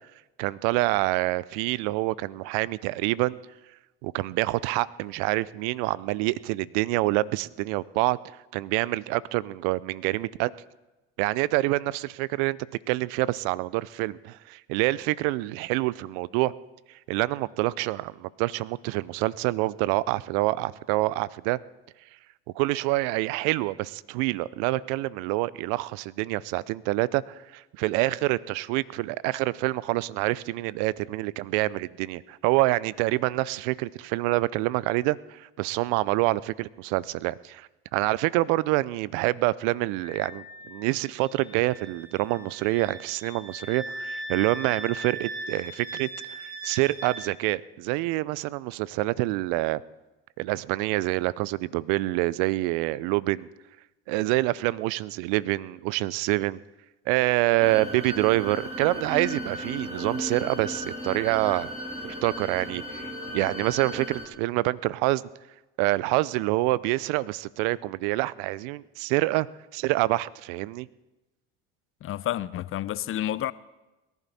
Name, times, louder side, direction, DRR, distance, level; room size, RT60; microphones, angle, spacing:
voice 1, 0.4-3.4 4.0-10.5 11.2-12.6 12.9-16.5 17.1-21.6 22.5-49.8 50.4-53.5 54.1-56.6 57.1-61.7 62.0-65.2 65.8-69.5 69.7-70.9, right 19 dB, 75° right, 0.5 m, -26 dB
Wind instrument woodwind instrument, 40.0-47.2, right 1 dB, 55° right, 5.8 m, -39 dB
sound 1, 57.6-64.3, equal, 20° right, 3.2 m, -36 dB
voice 2, 72.0-73.5, left 12 dB, 45° left, 0.6 m, -30 dB
22.5 x 11.0 x 4.2 m
hypercardioid pair, 65°, 29 cm